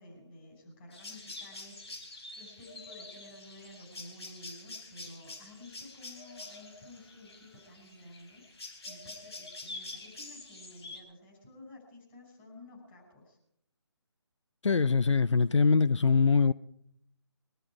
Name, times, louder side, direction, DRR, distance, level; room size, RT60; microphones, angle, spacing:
voice 1, 0.0-8.4 8.8-13.4, left 1 dB, 25° left, 5.6 m, -52 dB
sound 1, 0.9-11.0, left 2 dB, 60° left, 4.6 m, -46 dB
voice 2, 14.6-16.5, left 5 dB, 90° left, 0.5 m, -23 dB
22.0 x 12.5 x 4.9 m
figure-of-eight pair, 160°, 15 cm